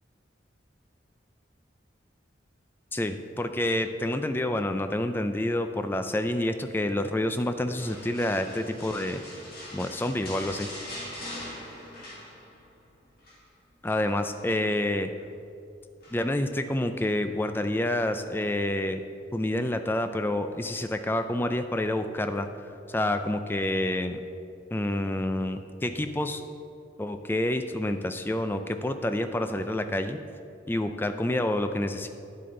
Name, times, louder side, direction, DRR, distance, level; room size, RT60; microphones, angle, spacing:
voice 1, 2.9-9.2 9.7-10.7 13.8-15.1 16.1-19.0 19.3-22.5 22.9-24.2 24.7-26.4 27.0-30.2 30.7-32.1, left 1 dB, 10° left, 8 dB, 0.3 m, -28 dB
sound 1, 7.8-12.8 13.0-13.4 13.8-14.9 16.0-16.5 17.0-17.1, left 1 dB, 50° left, 2.3 m, -42 dB
9.4 x 7.8 x 3.8 m, 2.5 s
head